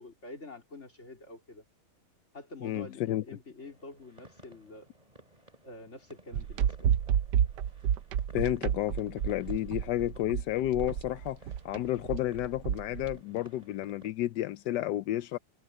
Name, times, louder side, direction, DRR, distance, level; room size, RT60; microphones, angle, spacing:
voice 1, 0.0-1.6 2.3-4.9 5.6-7.0, left 2 dB, 40° left, 4.4 m, -47 dB
voice 2, 2.6-3.2 8.3-11.4 11.6-15.4, left 14 dB, 85° left, 1.3 m, -31 dB
sound 1, 3.6-14.1, right 1 dB, 20° right, 4.3 m, -57 dB
sound 2, 6.3-13.1, right 9 dB, 90° right, 1.4 m, -30 dB
omnidirectional pair, 1.8 m